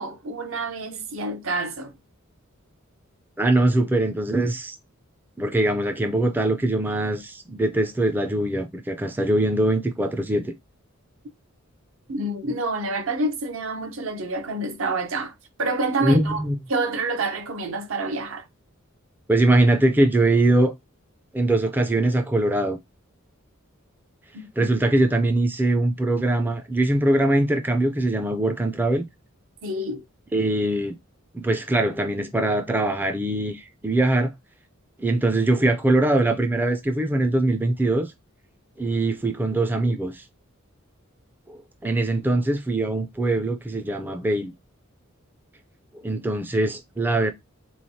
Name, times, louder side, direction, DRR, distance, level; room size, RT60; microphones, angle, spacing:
voice 1, 0.0-1.9 12.1-15.3 15.6-16.4 16.7-18.5 24.3-24.7 29.6-30.0, right 2 dB, 70° right, 0.7 m, -28 dB
voice 2, 3.4-4.8 5.4-10.5 16.0-16.6 19.3-20.7 21.3-22.8 24.6-29.0 30.3-30.9 31.3-34.3 35.0-38.1 38.8-40.2 41.5-44.5 46.0-47.3, right 2 dB, 10° right, 0.3 m, -22 dB
3.7 x 3.1 x 2.7 m
head